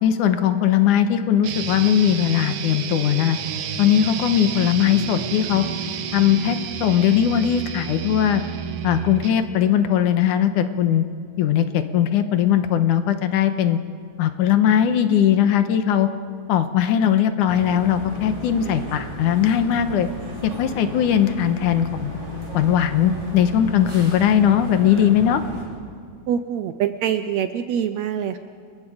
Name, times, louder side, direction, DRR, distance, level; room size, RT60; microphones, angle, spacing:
voice 1, 0.0-3.4 3.8-5.7 6.1-8.4 8.8-11.1 11.4-13.8 14.2-16.1 16.5-20.1 20.4-22.2 22.5-25.4, left 9 dB, 75° left, 9 dB, 2.5 m, -19 dB
sound 1, 1.4-9.4, right 9 dB, 90° right, 2.7 m, -31 dB
sound 2, 17.5-25.6, equal, 20° right, 7.3 m, -34 dB
voice 2, 26.3-28.4, right 9 dB, 75° right, 10 dB, 1.7 m, -24 dB
29.0 x 21.5 x 5.0 m, 2.2 s
omnidirectional pair, 3.8 m